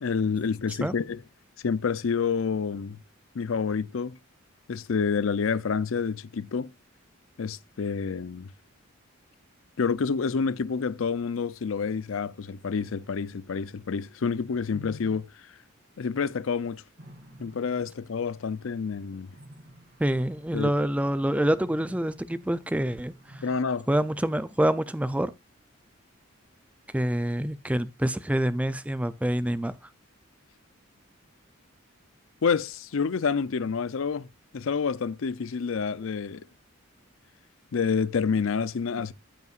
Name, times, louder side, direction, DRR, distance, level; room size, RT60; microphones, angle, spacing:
voice 1, 0.0-1.2 1.6-3.0 3.3-4.2 4.7-6.7 7.4-8.5 9.8-15.3 16.0-16.8 17.4-19.3 20.5-20.7 23.4-23.9 32.4-34.3 34.5-36.4 37.7-39.1, left 5 dB, 70° left, 0.5 m, -28 dB
sound 1, 17.0-23.7, right 1 dB, 50° right, 2.4 m, -52 dB
voice 2, 20.0-23.4 23.9-25.3 26.9-29.7, right 1 dB, 5° right, 0.4 m, -26 dB
14.0 x 5.5 x 2.4 m
head